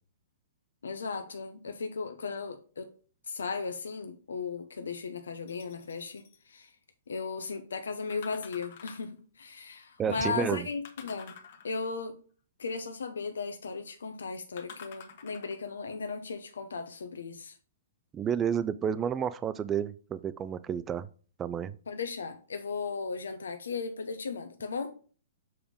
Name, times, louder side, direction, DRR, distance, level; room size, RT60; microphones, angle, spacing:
voice 1, 0.8-2.9 3.3-6.7 7.1-11.3 11.6-12.2 12.6-17.6 21.9-24.9, left 5 dB, 90° left, 7 dB, 0.9 m, -36 dB
sound 1, 5.5-6.4 8.1-9.2 10.8-12.0 14.6-15.7 16.4-16.5, left 6 dB, 55° left, 1.3 m, -49 dB
voice 2, 10.0-10.7 18.1-21.1 21.4-21.7, right 8 dB, 20° right, 15 dB, 0.3 m, -30 dB
7.0 x 3.5 x 5.1 m, 0.39 s
hypercardioid pair, 145°, 0 cm